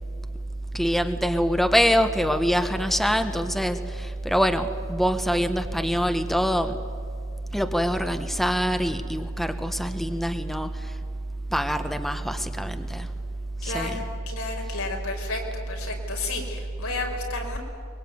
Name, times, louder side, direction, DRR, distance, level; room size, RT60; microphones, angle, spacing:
voice 1, 0.7-6.7 7.5-10.7 11.5-13.1 13.6-14.0, equal, ahead, 8 dB, 1.1 m, -24 dB
voice 2, 13.6-15.4 15.7-17.6, left 3 dB, 90° left, 1 dB, 5.3 m, -32 dB
23.0 x 22.0 x 9.5 m, 2.4 s
head